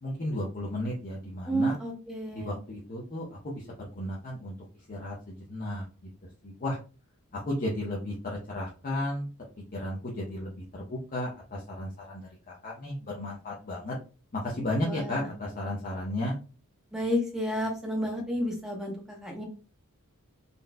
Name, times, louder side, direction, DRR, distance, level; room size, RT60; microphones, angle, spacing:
voice 1, 0.0-1.8 2.3-4.5 4.9-5.8 6.4-6.8 7.3-9.3 9.7-14.0 14.3-16.4, left 1 dB, 40° left, -4 dB, 0.7 m, -34 dB
voice 2, 1.5-2.5 14.8-15.3 16.9-19.4, equal, 5° right, 0 dB, 0.9 m, -31 dB
4.0 x 2.3 x 2.2 m, 0.34 s
head